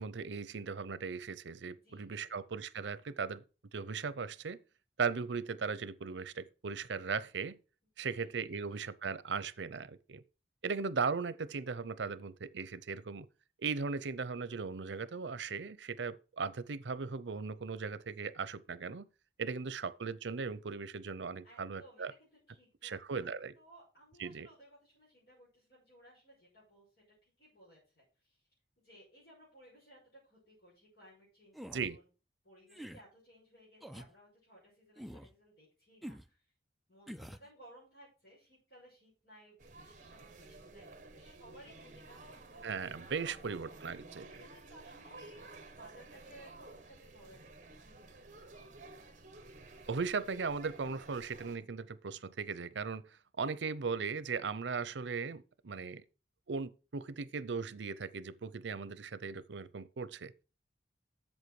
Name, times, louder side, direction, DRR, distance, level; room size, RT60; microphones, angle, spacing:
voice 1, 0.0-3.4 3.7-4.6 5.0-7.6 8.0-10.2 10.6-13.3 13.6-19.0 19.4-22.1 22.8-23.5 24.2-24.5 31.7-32.0 42.6-44.3 49.9-53.0 53.4-56.0 56.5-60.3, right 5 dB, 90° right, 0.6 m, -38 dB
voice 2, 1.8-2.4 8.0-8.7 21.4-28.5 28.8-32.1 32.4-36.5 36.9-42.6 43.2-43.6 44.2-45.4 45.7-48.1, right 1 dB, 60° left, 5.7 m, -60 dB
sound 1, 31.5-31.9 32.7-33.0 33.8-34.1 35.0-35.3 36.0-36.3 37.1-37.5, equal, ahead, 0.4 m, -46 dB
sound 2, 39.6-51.6, right 2 dB, 45° right, 1.4 m, -53 dB
8.0 x 7.3 x 4.7 m
head